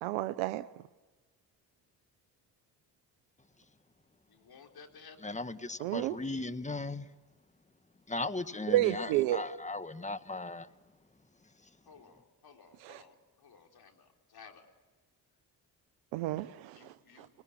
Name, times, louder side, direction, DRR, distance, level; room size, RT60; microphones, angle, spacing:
voice 1, 0.0-0.6 5.8-6.1 8.7-9.4 12.8-13.0 16.1-17.3, right 15 dB, 85° right, 12 dB, 0.8 m, -31 dB
voice 2, 4.3-5.3 11.9-14.7 16.7-17.3, left 5 dB, 55° left, 3 dB, 4.2 m, -56 dB
voice 3, 5.2-7.1 8.1-10.7, left 2 dB, 15° left, 11 dB, 1.7 m, -37 dB
29.5 x 20.0 x 9.0 m, 1.3 s
hypercardioid pair, 50°, 45 cm